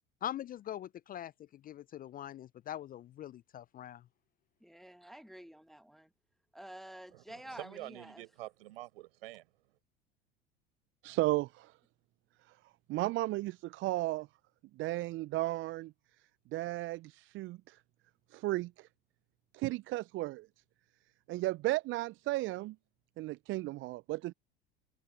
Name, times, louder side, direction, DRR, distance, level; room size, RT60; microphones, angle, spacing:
voice 1, 0.2-4.0, left 11 dB, 30° left, 0.5 m, -43 dB
voice 2, 4.6-6.1 6.5-8.2, right 1 dB, ahead, 1.2 m, -50 dB
voice 3, 7.1-9.5, right 17 dB, 70° right, 6.0 m, -47 dB
voice 4, 11.0-11.7 12.9-14.3 14.8-15.9 16.5-17.8 18.3-18.9 19.5-20.5 21.3-22.8 23.2-24.3, right 19 dB, 40° right, 0.6 m, -34 dB
hypercardioid pair, 75°, 30 cm